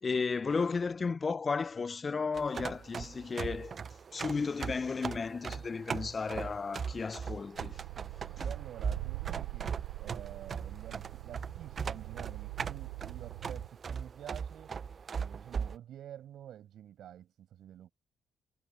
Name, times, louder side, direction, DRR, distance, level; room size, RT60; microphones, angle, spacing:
voice 1, 0.0-3.8 4.1-7.8, left 4 dB, 40° left, 0.8 m, -34 dB
sound 1, 2.3-15.8, right 6 dB, 50° right, 0.9 m, -39 dB
sound 2, 7.6-13.7, right 27 dB, 80° right, 4.1 m, -43 dB
voice 2, 8.4-14.7 15.2-17.9, right 11 dB, 65° right, 7.6 m, -49 dB
hypercardioid pair, 45°, 0 cm